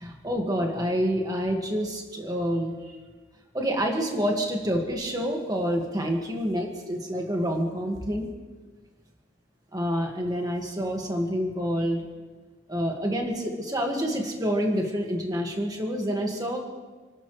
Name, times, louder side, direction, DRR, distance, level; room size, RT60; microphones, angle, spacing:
voice 1, 0.0-3.0 3.5-8.3 9.7-12.1 12.7-16.6, equal, 20° right, 1 dB, 1.9 m, -28 dB
29.5 x 12.5 x 3.3 m, 1.3 s
head